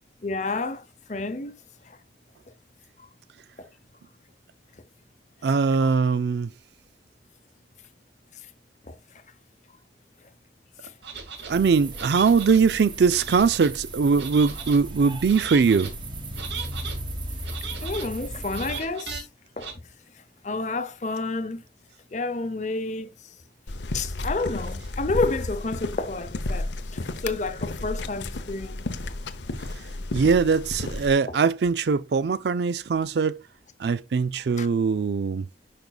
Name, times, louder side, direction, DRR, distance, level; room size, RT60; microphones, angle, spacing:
voice 1, 0.2-1.6 1.8-2.0 3.6-3.7 5.8-5.9 8.9-9.0 10.8-10.9 17.8-19.3 19.6-19.7 20.4-21.6 22.1-23.1 23.9-28.8 31.3-31.4 34.6-34.7, left 3 dB, 40° left, 0.8 m, -30 dB
voice 2, 5.4-6.5 11.5-15.9 30.1-33.4 33.8-35.4, right 5 dB, 70° right, 0.4 m, -21 dB
sound 1, 11.0-11.5 11.9-12.6 13.1-13.7 14.2-14.8 15.2-15.9 16.3-17.0 17.4-18.1 18.5-19.2 19.6-19.7, right 6 dB, 90° right, 2.0 m, -37 dB
sound 2, 11.5-18.8, right 1 dB, 25° right, 1.4 m, -36 dB
sound 3, 23.7-31.1, left 2 dB, 90° left, 0.8 m, -32 dB
11.0 x 5.2 x 2.3 m
head